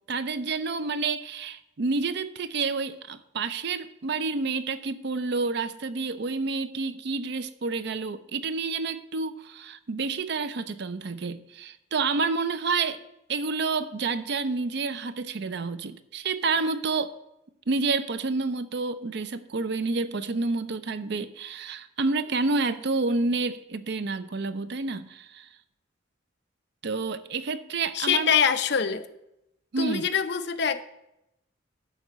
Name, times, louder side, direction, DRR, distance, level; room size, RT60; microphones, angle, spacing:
voice 1, 0.1-13.0 13.3-17.1 17.7-25.5 26.8-28.3 29.7-30.1, right 4 dB, 60° right, 12 dB, 0.5 m, -29 dB
voice 2, 27.9-29.1 29.8-30.8, left 7 dB, 60° left, 9 dB, 0.6 m, -24 dB
10.5 x 4.1 x 7.8 m, 0.85 s
head